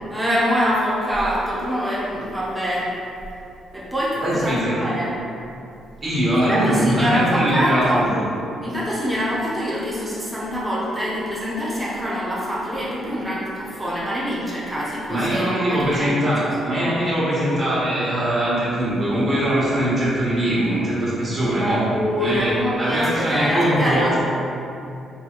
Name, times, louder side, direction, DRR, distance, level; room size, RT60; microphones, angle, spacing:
voice 1, 0.1-3.0 3.7-5.1 6.3-8.1 8.6-16.2 21.5-24.1, equal, 10° right, -7 dB, 0.8 m, -24 dB
voice 2, 4.2-4.8 6.0-8.2 15.1-21.9 22.2-24.2, right 1 dB, 45° right, -8 dB, 1.4 m, -21 dB
4.0 x 2.8 x 3.0 m, 2.6 s
cardioid pair, 90°, 0 cm